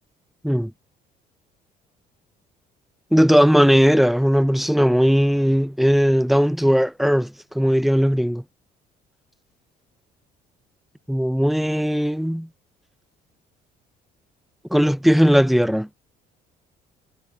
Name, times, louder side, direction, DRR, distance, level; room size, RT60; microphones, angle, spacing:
voice 1, 3.1-8.4 11.1-12.5 14.7-15.9, equal, ahead, 1.0 m, -18 dB
cardioid pair, 145°, 17 cm